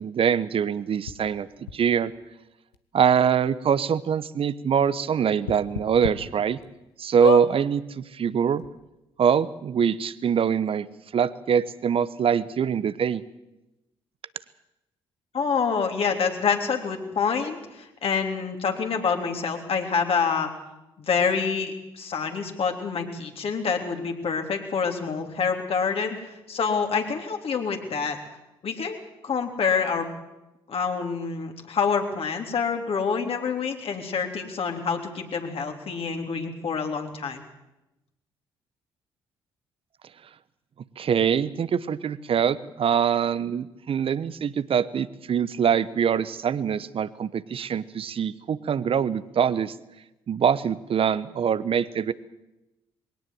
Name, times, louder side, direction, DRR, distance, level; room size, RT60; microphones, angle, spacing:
voice 1, 0.0-1.5 1.7-2.1 2.9-6.6 7.0-8.6 9.2-10.9 11.1-13.2 41.0-49.7 50.3-52.1, right 7 dB, 45° right, 17 dB, 1.1 m, -24 dB
sound 1, 1.1-1.2 1.7-1.8 2.7-2.8 3.1-3.2 3.7-3.8 5.4-6.1 6.6-6.7 7.2-7.5 8.3-8.4 8.6-8.7, left 10 dB, 80° left, 1.2 m, -28 dB
voice 2, 15.3-20.5 21.0-26.2 26.5-28.2 28.6-29.0 29.2-30.1 30.7-37.4, left 5 dB, 50° left, 3 dB, 3.5 m, -27 dB
21.5 x 17.5 x 7.8 m, 0.96 s
figure-of-eight pair, 45°, 13 cm